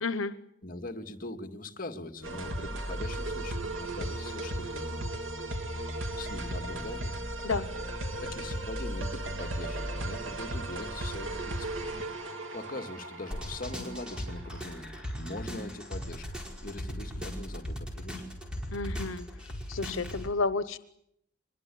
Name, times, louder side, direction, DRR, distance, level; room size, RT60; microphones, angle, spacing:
voice 1, 0.0-0.3 7.4-7.7 18.7-19.2 19.7-20.8, left 3 dB, 90° left, 14 dB, 1.0 m, -31 dB
voice 2, 0.6-5.0 6.2-7.1 8.2-11.9 12.5-14.9 15.1-16.3 16.6-18.2, left 2 dB, 45° left, 6 dB, 2.2 m, -41 dB
sound 1, 2.2-15.6, right 1 dB, 85° right, 3.2 m, -36 dB
sound 2, 13.3-20.3, equal, 5° right, 4.8 m, -38 dB
23.5 x 21.5 x 8.6 m, 0.74 s
head